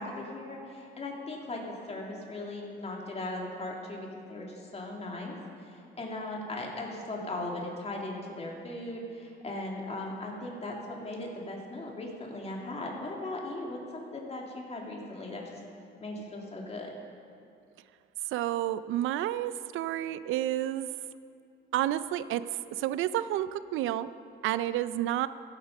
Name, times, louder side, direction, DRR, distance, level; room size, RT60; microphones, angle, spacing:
voice 1, 0.0-1.6 1.9-15.6 16.0-16.9, left 2 dB, 30° left, -1 dB, 2.6 m, -38 dB
voice 2, 18.3-20.9 21.7-22.4 22.7-24.1 24.4-25.3, right 13 dB, 85° right, 14 dB, 0.5 m, -30 dB
15.5 x 8.7 x 5.4 m, 2.5 s
cardioid pair, 90°, 20 cm